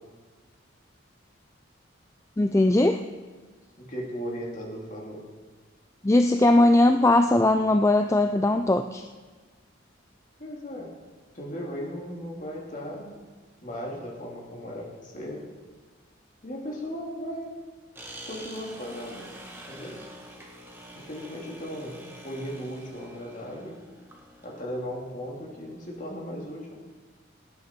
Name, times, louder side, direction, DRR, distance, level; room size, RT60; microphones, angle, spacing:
voice 1, 2.4-3.0 6.0-9.0, left 2 dB, 15° left, 7 dB, 0.3 m, -20 dB
voice 2, 3.8-5.3 10.4-10.9 11.3-13.1 13.6-15.5 16.4-17.6 18.2-19.3 19.7-20.0 20.9-23.8 24.4-26.7, equal, 40° left, -2 dB, 2.9 m, -37 dB
sound 1, 17.9-24.6, equal, 10° right, 1.7 m, -46 dB
17.5 x 11.0 x 4.6 m, 1.4 s
head